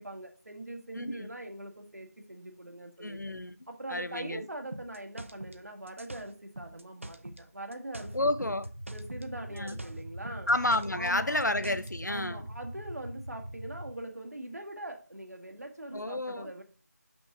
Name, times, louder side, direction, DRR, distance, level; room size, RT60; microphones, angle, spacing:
voice 1, 0.0-3.2 3.7-8.5 8.9-10.5 11.0-11.4 12.1-16.6, right 1 dB, 65° right, 1.6 m, -42 dB
voice 2, 0.9-1.3 3.0-3.6 3.9-4.4 8.1-8.7 9.5-9.8 10.5-12.4 15.9-16.5, left 2 dB, 90° left, 0.9 m, -30 dB
sound 1, 4.7-7.5 7.7-9.3 9.6-11.9, right 1 dB, 45° right, 0.7 m, -45 dB
sound 2, 8.0-13.9, right 1 dB, 30° right, 1.4 m, -43 dB
6.1 x 6.1 x 3.7 m
figure-of-eight pair, 175°, 9 cm